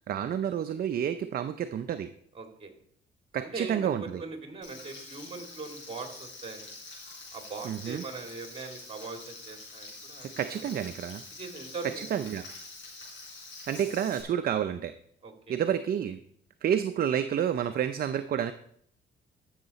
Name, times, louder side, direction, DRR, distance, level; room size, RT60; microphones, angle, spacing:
voice 1, 0.1-2.1 3.3-4.2 7.6-8.0 10.2-11.2 12.0-12.4 13.7-14.9 15.5-16.2 16.6-18.5, right 9 dB, 50° right, 9 dB, 0.5 m, -29 dB
voice 2, 2.3-2.7 3.4-6.8 7.3-10.7 11.4-12.0 15.2-15.6, right 4 dB, 30° right, 4 dB, 2.3 m, -41 dB
Frying (food), 4.6-14.2, left 3 dB, 70° left, 4.4 m, -46 dB
13.5 x 6.5 x 4.1 m, 0.66 s
cardioid pair, 90°, 20 cm